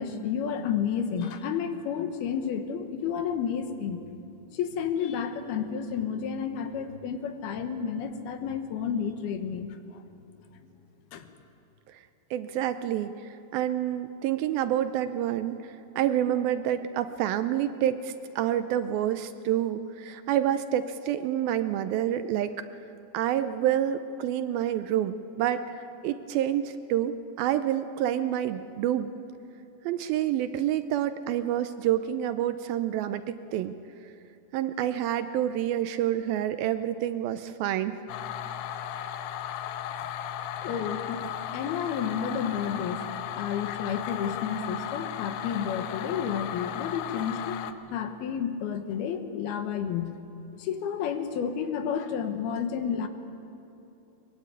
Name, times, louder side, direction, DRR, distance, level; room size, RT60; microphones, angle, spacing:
voice 1, 0.0-4.0 4.5-10.0 11.1-11.3 40.6-43.0 43.3-47.6 47.9-50.1 50.6-53.1, left 7 dB, 75° left, 8 dB, 3.1 m, -31 dB
voice 2, 12.3-22.7 23.1-29.1 29.8-33.7 34.5-38.0, right 11 dB, 80° right, 11 dB, 2.3 m, -28 dB
sound 1, 38.1-47.7, left 10 dB, 90° left, 3.0 m, -35 dB
23.0 x 21.5 x 9.2 m, 2.9 s
omnidirectional pair, 4.6 m